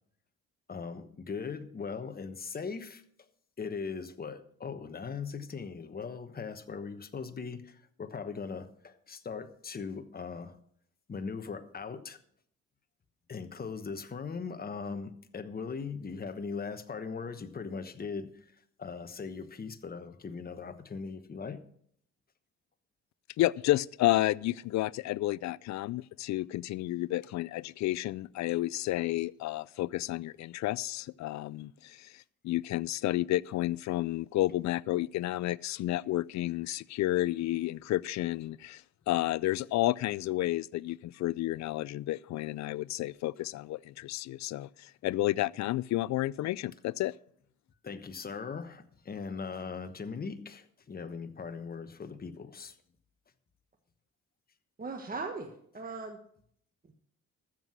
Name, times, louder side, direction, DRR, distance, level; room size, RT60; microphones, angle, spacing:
voice 1, 0.7-3.0 3.6-10.6 11.1-12.2 13.3-18.5 18.8-21.6 47.8-52.8, left 5 dB, 30° left, 1.2 m, -39 dB
voice 2, 23.4-38.8 39.1-47.1, left 16 dB, 65° left, 0.4 m, -31 dB
voice 3, 54.8-56.2, right 4 dB, 30° right, 1.4 m, -38 dB
13.5 x 7.6 x 6.2 m
cardioid pair, 90°, 30 cm